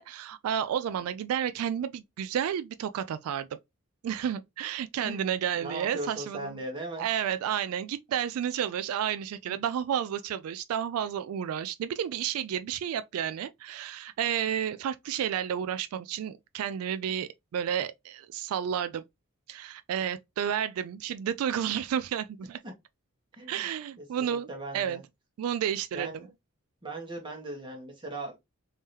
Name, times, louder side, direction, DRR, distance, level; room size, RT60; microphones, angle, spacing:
voice 1, 0.0-3.5 4.0-6.6 7.0-19.0 19.5-22.6 23.5-25.0 25.4-26.2, right 9 dB, 80° right, 0.3 m, -31 dB
voice 2, 5.6-7.4 9.5-9.6 23.4-23.7 24.0-25.0 25.9-26.3 26.8-28.4, right 1 dB, 20° right, 1.3 m, -39 dB
3.6 x 2.8 x 3.1 m
head